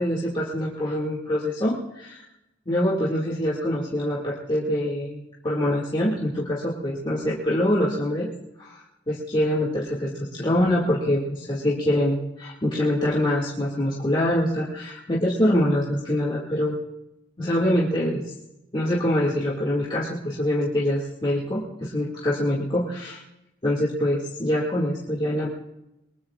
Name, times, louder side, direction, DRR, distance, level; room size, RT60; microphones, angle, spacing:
voice 1, 0.0-2.2 2.7-8.3 8.6-8.8 9.1-16.8 17.4-18.2 18.7-23.2 23.6-25.5, left 1 dB, 30° left, -6 dB, 2.1 m, -24 dB
23.0 x 21.0 x 2.4 m, 0.91 s
head